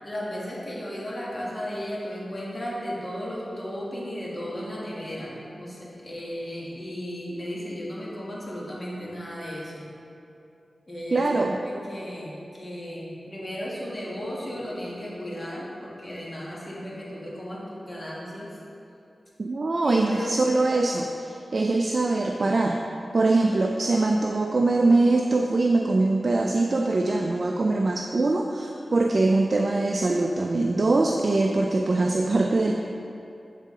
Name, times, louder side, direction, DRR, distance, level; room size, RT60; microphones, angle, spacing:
voice 1, 0.0-9.9 10.9-18.6 19.8-20.4, equal, 30° left, -6 dB, 1.4 m, -35 dB
voice 2, 11.1-11.6 19.4-22.8 23.1-32.7, right 2 dB, 55° right, 2 dB, 0.3 m, -23 dB
8.1 x 3.7 x 3.7 m, 2.7 s
wide cardioid pair, 75°, 0 cm